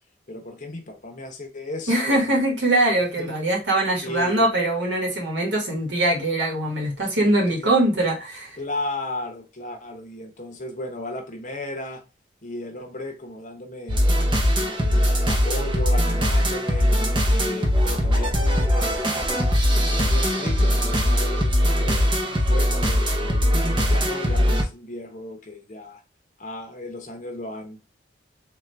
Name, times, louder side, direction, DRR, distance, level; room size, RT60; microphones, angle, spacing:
voice 1, 0.3-2.4 3.2-3.3 4.0-4.5 7.5-7.7 8.6-12.0 12.4-14.1 14.6-16.9 17.3-19.1 20.0-26.0 26.4-27.8, left 1 dB, 40° left, 0.9 m, -35 dB
voice 2, 1.9-8.6, right 1 dB, 80° right, 1.6 m, -22 dB
sound 1, 13.9-24.6, equal, 25° right, 0.7 m, -21 dB
3.7 x 2.6 x 3.3 m
head